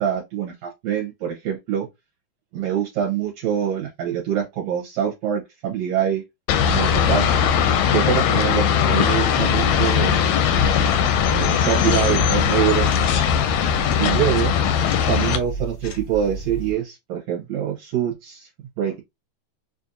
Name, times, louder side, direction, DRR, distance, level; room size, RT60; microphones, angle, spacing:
voice 1, 0.0-1.9 2.5-6.2 6.7-7.3 7.9-10.2 11.3-12.9 14.0-14.5 15.1-18.5 18.8-19.0, right 9 dB, 70° right, 1.9 m, -24 dB
sound 1, 6.5-15.4, left 8 dB, 80° left, 1.6 m, -19 dB
sound 2, 9.3-16.7, right 3 dB, 65° left, 1.0 m, -34 dB
5.0 x 2.5 x 2.6 m
omnidirectional pair, 3.5 m